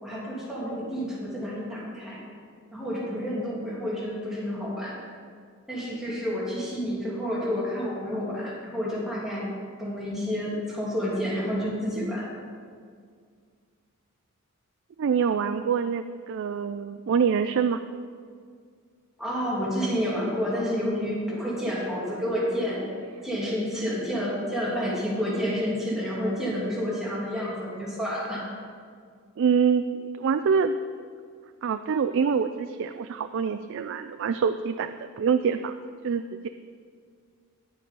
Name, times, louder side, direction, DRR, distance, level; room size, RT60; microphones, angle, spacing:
voice 1, 0.0-2.2 2.7-5.0 5.7-9.5 9.8-12.3 19.2-22.8 23.2-28.5, equal, ahead, -7 dB, 2.6 m, -29 dB
voice 2, 15.0-17.8 29.4-29.9 30.2-30.8 31.6-35.8 36.0-36.5, right 6 dB, 60° right, 9 dB, 0.4 m, -25 dB
10.5 x 7.7 x 5.3 m, 2.1 s
head